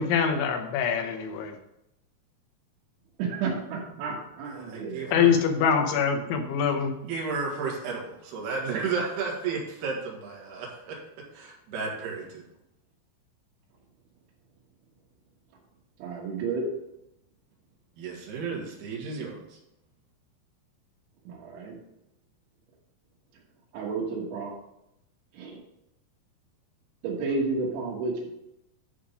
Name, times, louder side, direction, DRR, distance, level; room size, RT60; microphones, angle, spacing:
voice 1, 0.0-1.6 5.1-6.9, left 7 dB, 85° left, 4 dB, 3.4 m, -24 dB
voice 2, 3.2-5.1 16.0-16.7 21.3-21.8 23.7-24.5 25.3-25.6 27.0-28.3, right 4 dB, 90° right, -6 dB, 3.9 m, -31 dB
voice 3, 4.5-5.4 7.0-11.0 11.3-12.4 18.0-19.6, right 4 dB, 65° right, -2 dB, 3.7 m, -33 dB
10.0 x 5.0 x 5.2 m, 0.83 s
omnidirectional pair, 5.2 m